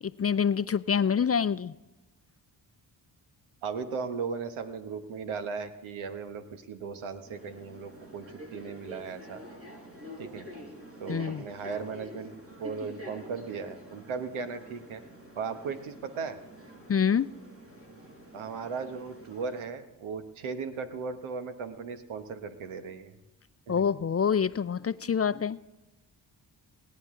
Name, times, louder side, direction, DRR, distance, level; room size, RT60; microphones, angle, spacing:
voice 1, 0.0-1.7 11.1-11.4 16.9-17.3 23.7-25.6, left 7 dB, 30° left, 15 dB, 0.5 m, -26 dB
voice 2, 3.6-9.4 10.2-10.5 11.0-15.0 15.3-16.4 18.3-23.2 23.7-23.8, right 5 dB, 80° right, 9 dB, 1.4 m, -37 dB
sound 1, 7.3-19.6, equal, 30° right, 6.7 m, -47 dB
29.0 x 10.5 x 3.8 m, 1.1 s
supercardioid pair, 40°, 48 cm